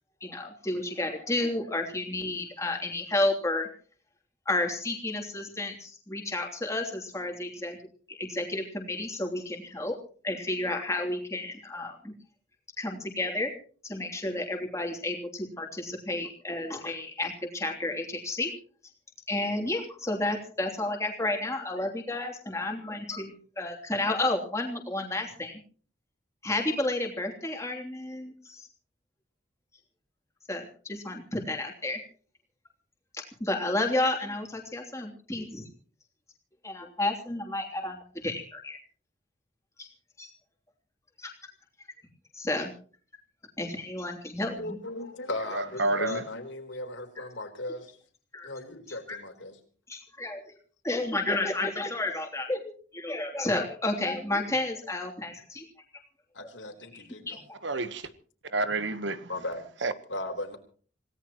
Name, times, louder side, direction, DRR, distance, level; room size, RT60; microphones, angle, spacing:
voice 1, 0.2-3.7 4.4-7.8 8.2-10.0 10.2-12.1 12.8-13.5 13.8-18.5 19.3-25.5 26.4-28.7 30.5-32.0 33.1-35.7 36.6-38.8 39.8-39.9 40.2-40.3 41.2-41.3 42.3-42.7 43.6-44.8 47.2-47.3 48.3-48.5 49.1-49.2 49.9-50.5 50.8-52.6 52.9-55.6 56.9-57.6, left 2 dB, 15° left, 3.1 m, -31 dB
voice 2, 44.6-48.0 48.4-49.6 56.3-57.4 59.3-59.6 60.1-60.6, left 1 dB, 75° left, 3.9 m, -37 dB
voice 3, 45.5-46.2 57.6-58.1 58.5-59.3 59.8-59.9, right 2 dB, 70° right, 1.2 m, -29 dB
26.5 x 18.0 x 3.1 m
head